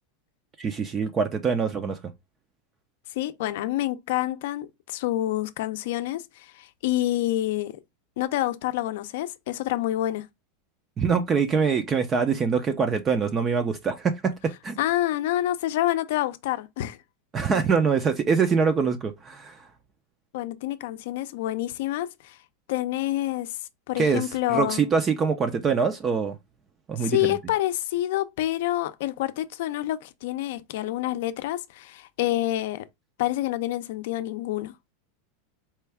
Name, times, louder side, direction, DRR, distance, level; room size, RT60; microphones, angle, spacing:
voice 1, 0.6-2.0 11.0-14.8 17.3-19.7 24.0-26.4 26.9-27.4, right 5 dB, 20° right, 0.4 m, -24 dB
voice 2, 3.2-7.7 8.2-10.3 14.8-17.0 20.3-22.4 22.7-23.6 23.9-24.8 27.0-32.8 33.2-34.7, left 14 dB, 65° left, 0.5 m, -27 dB
4.3 x 2.3 x 3.3 m
supercardioid pair, 155°, 0 cm